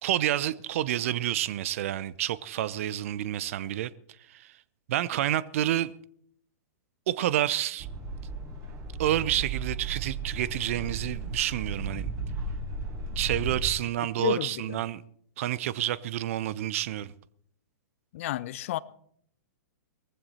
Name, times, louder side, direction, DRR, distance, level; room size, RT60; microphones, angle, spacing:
voice 1, 0.0-3.9 4.3-4.5 4.9-5.9 7.1-7.9 9.0-12.1 13.2-15.0 15.4-17.1, right 12 dB, 50° right, 0.7 m, -29 dB
sound 1, 7.8-13.7, right 3 dB, 30° right, 4.7 m, -35 dB
voice 2, 14.2-14.8 18.1-18.8, left 14 dB, 50° left, 0.7 m, -31 dB
19.5 x 15.0 x 4.2 m
figure-of-eight pair, 110°, 9 cm